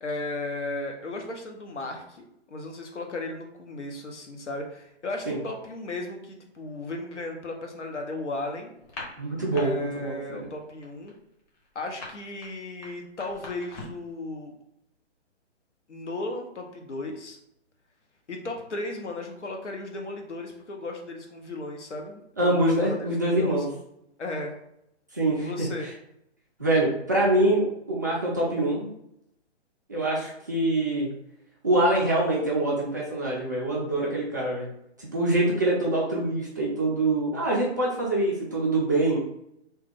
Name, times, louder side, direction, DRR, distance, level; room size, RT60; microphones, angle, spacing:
voice 1, 0.0-8.7 9.5-11.1 11.7-14.5 15.9-17.4 18.3-22.9 23.2-23.7 24.2-24.5 25.4-25.9, left 2 dB, 85° left, 2 dB, 0.9 m, -35 dB
sound 1, 8.8-9.6 10.0-10.3 10.5-14.1, left 3 dB, 35° left, 1.0 m, -42 dB
voice 2, 9.2-10.5 22.4-23.7 25.1-25.7 26.6-28.9 29.9-31.1 31.6-34.7 35.0-39.2, right 1 dB, 20° right, -5 dB, 0.3 m, -25 dB
3.2 x 2.2 x 3.4 m, 0.77 s
figure-of-eight pair, 135°, 34 cm